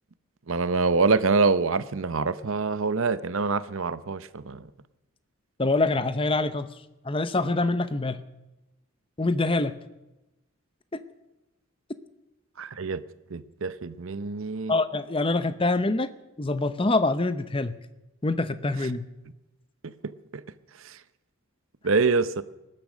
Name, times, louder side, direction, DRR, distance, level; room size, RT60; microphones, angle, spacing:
voice 1, 0.5-4.6 12.6-13.0 13.3-14.7 19.8-20.4 20.8-21.0 21.8-22.4, right 4 dB, 65° right, 14 dB, 0.7 m, -25 dB
voice 2, 5.6-6.7 7.0-8.2 9.2-9.7 10.9-11.0 14.7-16.1 16.4-17.7 18.2-19.0, left 2 dB, 25° left, 13 dB, 0.7 m, -25 dB
19.5 x 12.0 x 6.2 m, 0.99 s
head